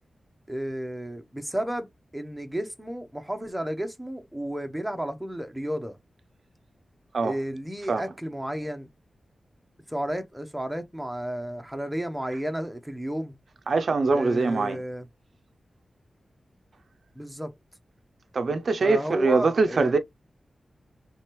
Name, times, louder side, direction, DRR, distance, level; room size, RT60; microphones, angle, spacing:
voice 1, 0.5-6.0 7.2-8.9 9.9-13.4 14.1-15.1 17.1-17.5 18.8-20.0, right 1 dB, 5° right, 0.6 m, -32 dB
voice 2, 13.7-14.8 18.3-20.0, right 3 dB, 55° right, 0.4 m, -23 dB
3.3 x 3.1 x 3.0 m
wide cardioid pair, 145°, 0 cm